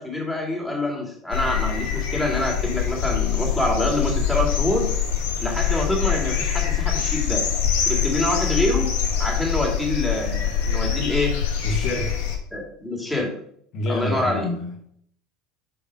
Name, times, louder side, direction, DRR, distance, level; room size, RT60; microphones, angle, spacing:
voice 1, 0.0-4.9 5.4-7.5 7.9-8.9 9.2-11.3 12.5-13.3 13.9-14.5, left 1 dB, ahead, 2.2 m, -26 dB
sound 1, 1.3-12.4, left 8 dB, 65° left, 1.2 m, -24 dB
voice 2, 11.6-12.2 13.7-14.7, left 1 dB, 50° left, 0.9 m, -27 dB
5.2 x 4.9 x 5.1 m
figure-of-eight pair, 70°, 0 cm